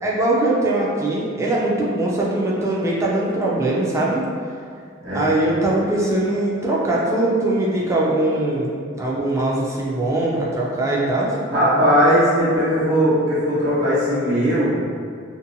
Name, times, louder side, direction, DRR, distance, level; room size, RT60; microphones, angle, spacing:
voice 1, 0.0-4.2 5.1-11.4, right 2 dB, 15° right, -4 dB, 0.3 m, -21 dB
voice 2, 11.5-14.8, equal, 80° right, -11 dB, 1.3 m, -18 dB
2.6 x 2.2 x 2.6 m, 2.2 s
head